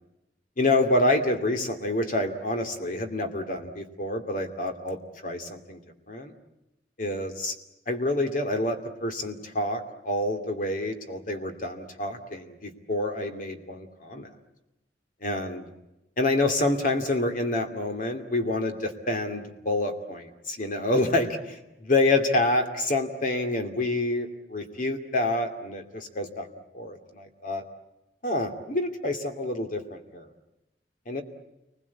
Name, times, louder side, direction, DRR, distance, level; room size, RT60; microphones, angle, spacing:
voice 1, 0.6-5.8 6.1-6.3 7.0-7.5 7.9-14.3 15.2-15.7 16.2-26.5 26.7-27.6 28.2-30.3 31.1-31.2, left 2 dB, 50° left, 6 dB, 2.6 m, -27 dB
29.0 x 21.0 x 8.5 m, 0.96 s
head